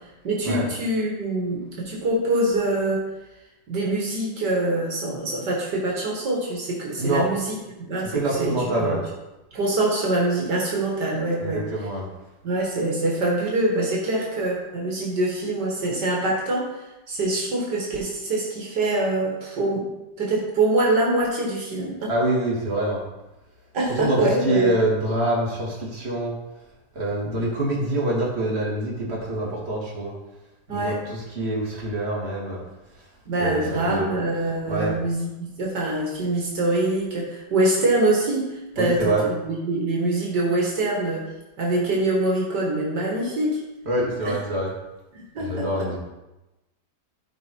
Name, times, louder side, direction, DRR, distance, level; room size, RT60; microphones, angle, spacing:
voice 1, 0.2-3.1 3.7-8.5 8.8-9.0 9.5-11.6 12.4-16.7 17.1-19.8 20.2-22.1 23.7-24.8 30.7-31.0 33.3-41.3 41.6-43.6 45.1-45.9, right 2 dB, 75° right, -3 dB, 2.4 m, -24 dB
voice 2, 7.0-7.3 8.0-9.0 11.4-12.1 22.1-23.0 23.8-26.4 26.9-30.1 30.7-32.6 33.3-34.2 34.7-35.0 38.7-39.3 43.8-44.7 45.4-46.0, right 1 dB, 40° right, -4 dB, 2.7 m, -25 dB
14.0 x 4.7 x 4.6 m, 1.0 s
omnidirectional pair, 1.8 m